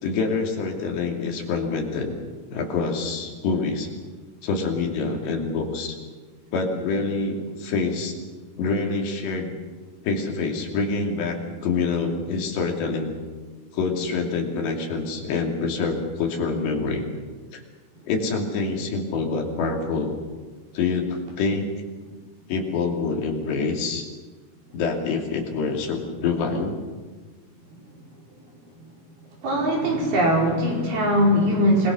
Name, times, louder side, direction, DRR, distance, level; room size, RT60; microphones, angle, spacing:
voice 1, 0.0-2.1 2.5-3.9 4.4-6.0 6.5-8.1 8.6-9.5 10.0-11.4 11.6-13.2 13.7-17.1 17.5-17.6 18.0-20.2 20.7-21.8 22.5-24.1 24.7-26.8, left 4 dB, 80° left, 2 dB, 5.0 m, -26 dB
voice 2, 29.4-31.9, equal, 65° right, -1 dB, 6.8 m, -21 dB
27.0 x 21.0 x 6.4 m, 1.3 s
omnidirectional pair, 4.9 m